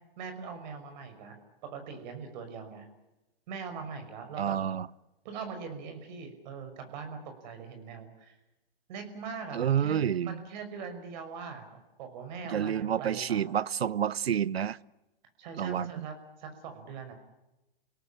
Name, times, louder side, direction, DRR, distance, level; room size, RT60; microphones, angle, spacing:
voice 1, 0.2-1.3 1.6-2.9 3.5-4.6 5.2-8.3 8.9-13.4 15.4-17.1, right 5 dB, 50° right, 7 dB, 5.9 m, -41 dB
voice 2, 4.4-4.9 9.5-10.4 12.5-14.8 15.6-16.1, right 9 dB, 90° right, 21 dB, 0.9 m, -29 dB
29.5 x 18.0 x 8.8 m, 0.98 s
hypercardioid pair, 135°, 30 cm